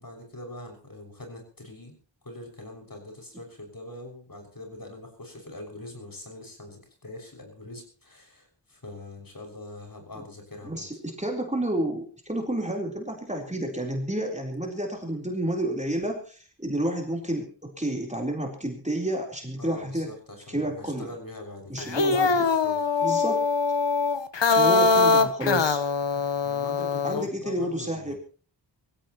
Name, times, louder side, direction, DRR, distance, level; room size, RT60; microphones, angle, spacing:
voice 1, 0.0-2.0 2.2-10.9 19.6-22.8 26.1-28.2, left 1 dB, 50° left, 3 dB, 6.5 m, -43 dB
voice 2, 10.6-20.1 20.5-21.1 21.7-22.5 23.0-23.4 24.5-25.8 27.0-28.1, right 1 dB, 15° right, 0 dB, 4.0 m, -30 dB
sound 1, 21.8-27.3, left 4 dB, 75° left, 1.3 m, -23 dB
24.0 x 16.0 x 3.1 m, 0.39 s
wide cardioid pair, 65°, 44 cm